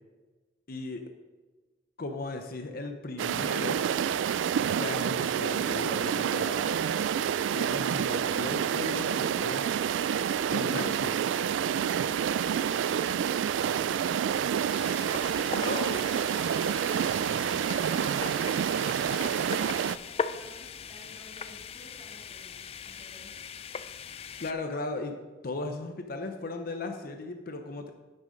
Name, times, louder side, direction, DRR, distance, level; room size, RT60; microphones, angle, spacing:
voice 1, 0.7-1.0 2.0-3.8 4.7-6.7 7.5-9.7 10.5-11.2 15.5-16.0 24.4-25.1 25.4-27.9, left 2 dB, 55° left, 5 dB, 0.7 m, -36 dB
sound 1, 3.2-20.0, right 8 dB, 85° right, 0.3 m, -28 dB
sound 2, 14.7-24.5, left 6 dB, 35° left, 0.3 m, -40 dB
voice 2, 17.4-23.3, right 1 dB, 15° right, -6 dB, 3.0 m, -53 dB
9.3 x 6.4 x 5.1 m, 1.3 s
head